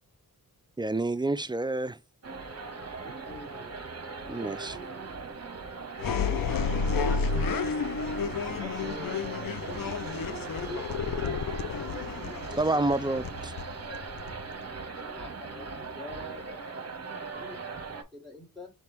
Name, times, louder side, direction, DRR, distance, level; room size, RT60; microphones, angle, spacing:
voice 1, 0.8-2.0 4.3-4.8 12.6-13.5, right 2 dB, 15° right, 0.3 m, -28 dB
sound 1, 2.2-18.0, right 4 dB, 40° right, 0.8 m, -39 dB
voice 2, 3.0-3.8 4.2-4.8 7.1-7.3 7.8-10.4 10.7-10.9 11.2-11.9 12.2-12.6 13.0-13.1 15.0-16.7 17.3-18.7, left 2 dB, 10° left, 1.5 m, -46 dB
sound 2, 6.0-14.6, left 5 dB, 65° left, 0.5 m, -31 dB
4.4 x 3.3 x 3.0 m
cardioid pair, 45°, 37 cm